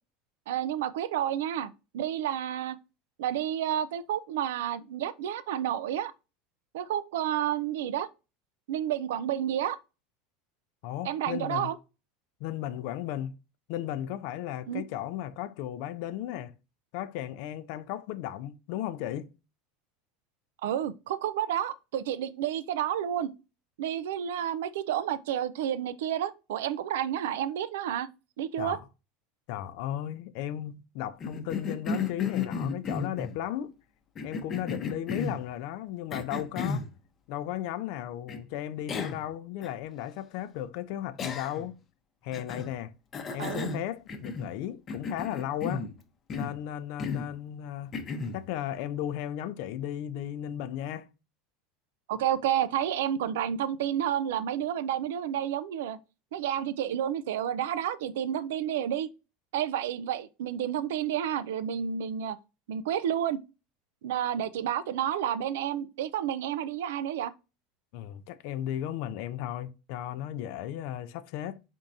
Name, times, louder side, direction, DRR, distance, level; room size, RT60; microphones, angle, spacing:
voice 1, 0.5-2.8 3.2-6.1 6.7-8.1 8.7-9.8 11.0-11.8 14.7-14.8 20.6-23.3 23.8-28.1 28.4-28.8 43.4-43.7 52.1-56.0 56.3-59.1 59.5-62.4 62.7-63.4 64.0-67.3, right 10 dB, 85° right, 0.3 m, -30 dB
voice 2, 10.8-11.7 12.4-13.3 13.7-16.5 16.9-19.3 28.6-28.8 29.5-33.7 34.2-36.9 37.3-41.8 42.2-42.9 43.3-45.9 46.3-47.9 48.3-51.1 67.9-71.6, left 11 dB, 70° left, 0.4 m, -35 dB
Cough, 31.2-33.4 34.2-35.4 36.1-36.9 38.3-38.4 38.9-39.3 39.6-39.7 41.2-41.7 42.3-42.7 43.1-44.6 44.9-45.9 46.3-46.6 47.0-47.3 47.9-48.4, left 5 dB, 35° left, 0.7 m, -34 dB
4.0 x 3.5 x 2.6 m
supercardioid pair, 105°, 0 cm